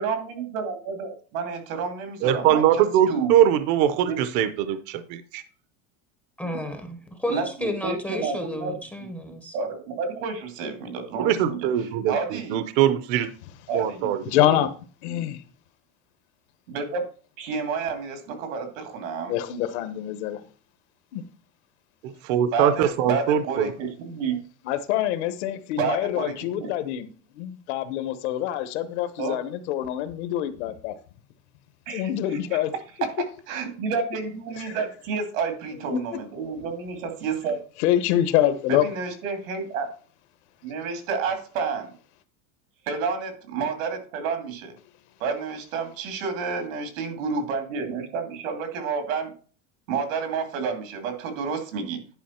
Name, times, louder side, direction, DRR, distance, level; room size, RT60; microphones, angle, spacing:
voice 1, 0.0-3.3 4.1-4.2 7.3-8.7 9.5-11.7 12.1-12.6 13.7-14.1 16.7-17.1 17.4-19.3 22.5-24.4 25.8-26.7 29.2-29.4 31.9-32.6 33.0-37.6 38.7-39.9 40.6-41.9 42.9-44.8 45.2-49.3 49.9-52.0, right 5 dB, 90° right, 2.6 m, -30 dB
voice 2, 2.2-5.4 11.2-13.3 13.7-14.2 22.0-23.7, right 10 dB, 40° right, 0.6 m, -22 dB
voice 3, 6.4-9.5, left 1 dB, 5° left, 0.5 m, -32 dB
voice 4, 14.2-14.7 15.0-15.4 19.3-20.4 21.1-21.2 24.6-27.1 27.4-30.9 31.9-32.7 34.7-34.8 35.8-36.0 37.8-38.9, left 12 dB, 60° left, 1.0 m, -25 dB
10.5 x 5.0 x 4.3 m
supercardioid pair, 175°, 38 cm